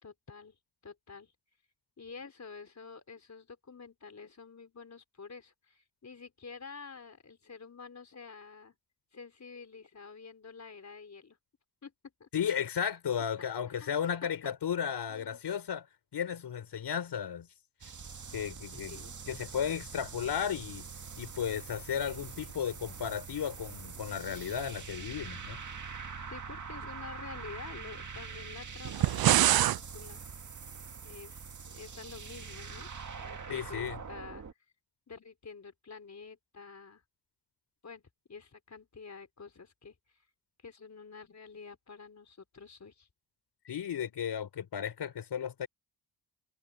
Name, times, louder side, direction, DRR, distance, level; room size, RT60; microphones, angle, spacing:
voice 1, 0.0-0.6 0.8-1.3 2.0-8.8 9.1-11.4 11.8-11.9 12.2-12.3 13.1-13.9 14.4-14.5 15.1-15.4 18.7-19.1 26.2-30.2 31.0-32.9 33.2-34.5 35.1-37.0 37.8-38.0 38.3-40.0 40.6-43.1, left 5 dB, 45° left, 4.4 m, -49 dB
voice 2, 12.3-15.9 16.1-17.5 18.3-19.0 19.3-20.9 21.2-25.6 33.5-34.0 43.6-45.7, left 8 dB, 85° left, 4.3 m, -34 dB
sound 1, 17.8-34.5, right 5 dB, 50° right, 2.2 m, -44 dB
sound 2, 28.8-29.8, right 13 dB, 65° right, 0.5 m, -24 dB
cardioid pair, 85°, 40 cm